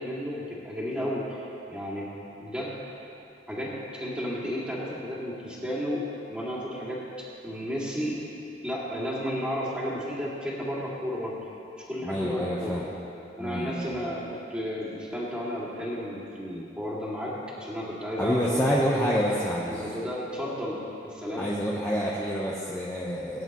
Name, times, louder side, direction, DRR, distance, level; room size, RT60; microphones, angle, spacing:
voice 1, 0.0-1.4 1.7-2.1 2.4-2.8 3.5-6.0 6.3-7.0 7.4-8.2 8.6-11.4 11.9-12.8 13.4-18.7 19.7-20.8 21.0-21.5, equal, 5° right, -7 dB, 2.4 m, -33 dB
voice 2, 12.0-12.8 13.4-13.9 18.2-19.8 21.4-23.4, equal, 10° left, -6 dB, 1.0 m, -27 dB
20.5 x 9.8 x 3.1 m, 2.7 s
head